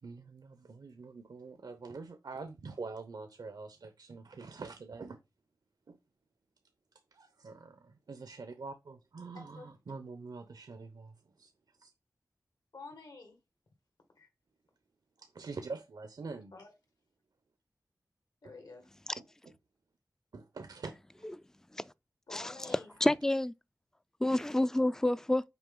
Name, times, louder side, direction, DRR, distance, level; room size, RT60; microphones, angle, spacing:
voice 1, 0.0-5.2 5.9-6.0 7.1-11.1 11.4-11.5 11.8-11.9 15.2-16.5 18.4-18.5 19.1-19.6 20.3-20.9 22.9-23.2, right 4 dB, 75° right, 0.7 m, -45 dB
voice 2, 9.3-9.7 12.7-13.4 14.2-14.3 16.5-16.7 18.4-18.9 22.3-22.9, left 3 dB, 70° left, 1.9 m, -49 dB
voice 3, 22.3-23.5 24.2-25.4, left 1 dB, 5° left, 0.3 m, -29 dB
5.9 x 4.3 x 3.8 m
cardioid pair, 55°, 7 cm